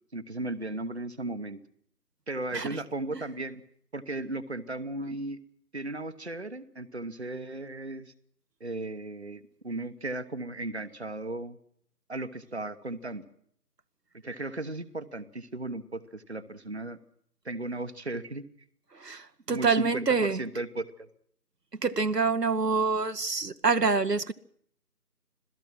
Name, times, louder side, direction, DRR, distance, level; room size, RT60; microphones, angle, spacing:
voice 1, 0.1-1.6 2.3-3.6 3.9-5.4 5.7-8.1 8.6-11.6 12.1-13.2 14.2-17.0 17.4-18.4 19.5-21.1, right 2 dB, 40° right, 1.1 m, -36 dB
voice 2, 18.9-20.4 21.7-24.3, right 4 dB, 70° right, 1.1 m, -26 dB
26.5 x 17.0 x 6.0 m
figure-of-eight pair, 165°, 50 cm